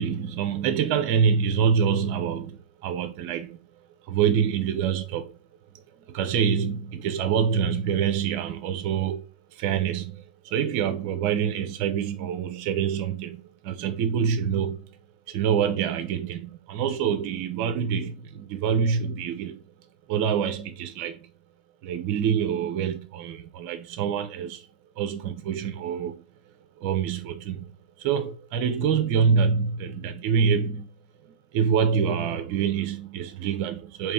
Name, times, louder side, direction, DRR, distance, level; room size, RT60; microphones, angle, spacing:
voice 1, 0.0-3.7 4.0-5.4 6.1-9.3 9.5-15.0 15.3-19.6 20.1-21.3 21.8-24.7 25.0-26.2 26.8-27.7 28.0-30.9 31.5-34.1, right 7 dB, 45° right, 0.5 m, -26 dB
3.4 x 3.0 x 3.2 m
hypercardioid pair, 110°, 5 cm